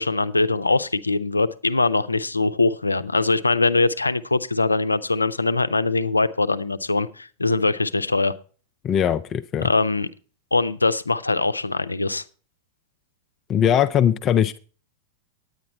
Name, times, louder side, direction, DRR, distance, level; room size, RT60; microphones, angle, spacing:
voice 1, 0.0-8.3 9.6-10.1 10.5-12.2, left 3 dB, 80° left, 14 dB, 0.5 m, -22 dB
voice 2, 8.8-9.7 13.5-14.6, left 9 dB, 30° left, 10 dB, 0.4 m, -20 dB
9.6 x 9.5 x 4.2 m, 0.39 s
figure-of-eight pair, 90°, 0 cm